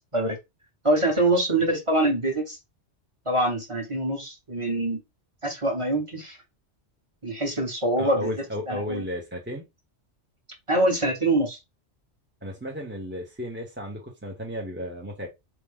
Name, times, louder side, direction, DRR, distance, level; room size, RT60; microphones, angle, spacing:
voice 1, 0.8-2.6 3.2-5.0 5.4-6.4 7.2-8.3 8.7-9.0 10.7-11.6, right 1 dB, 25° right, 1.4 m, -24 dB
voice 2, 8.0-9.7 12.4-15.3, equal, 10° right, 0.9 m, -34 dB
4.2 x 3.1 x 3.5 m
omnidirectional pair, 1.3 m